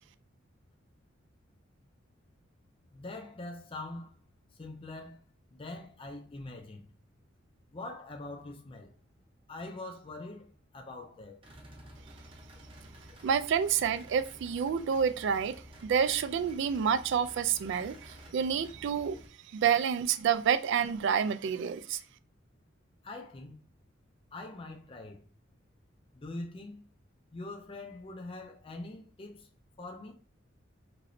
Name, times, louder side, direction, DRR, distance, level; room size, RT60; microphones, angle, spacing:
voice 1, 2.9-4.2 4.5-5.2 5.5-6.9 7.7-9.0 9.5-10.5 10.7-11.4 23.0-23.6 24.3-25.2 26.1-26.8 27.3-29.5 29.8-30.1, left 2 dB, 30° left, 0.4 m, -43 dB
sound 1, 9.5-9.9 11.4-19.3, equal, 30° right, 0.7 m, -52 dB
voice 2, 13.2-19.2 19.5-22.0, right 7 dB, 65° right, 0.3 m, -28 dB
3.0 x 2.9 x 2.6 m
head